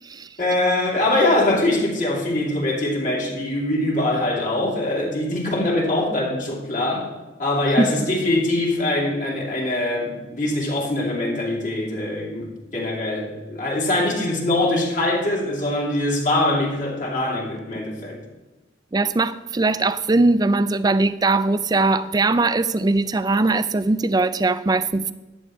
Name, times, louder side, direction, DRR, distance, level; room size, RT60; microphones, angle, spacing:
voice 1, 0.4-7.1 7.4-18.2, left 1 dB, 45° left, 2.9 m, -23 dB
voice 2, 18.9-25.1, right 3 dB, 20° right, 0.4 m, -20 dB
14.0 x 10.5 x 3.2 m
head